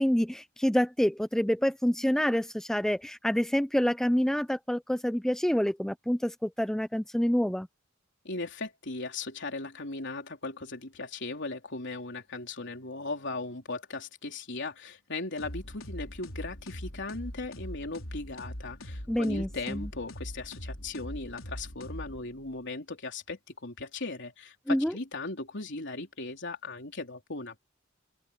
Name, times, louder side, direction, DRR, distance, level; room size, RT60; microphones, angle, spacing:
voice 1, 0.0-7.7 19.1-19.9 24.7-24.9, equal, ahead, 0.4 m, -27 dB
voice 2, 8.2-27.6, left 3 dB, 60° left, 3.7 m, -38 dB
sound 1, 15.4-22.5, equal, 85° left, 4.0 m, -42 dB
open air
head